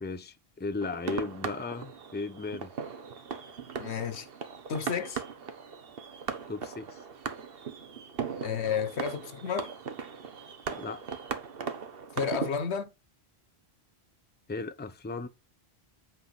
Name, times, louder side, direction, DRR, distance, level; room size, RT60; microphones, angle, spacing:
voice 1, 0.0-2.7 6.5-7.0 10.7-11.0 14.5-15.3, left 3 dB, 10° left, 0.6 m, -36 dB
sound 1, 0.8-12.5, right 6 dB, 65° right, 1.1 m, -38 dB
voice 2, 3.8-4.3 4.7-5.2 8.4-9.7 12.2-12.9, left 7 dB, 90° left, 1.2 m, -31 dB
8.0 x 3.9 x 5.7 m
omnidirectional pair, 1.1 m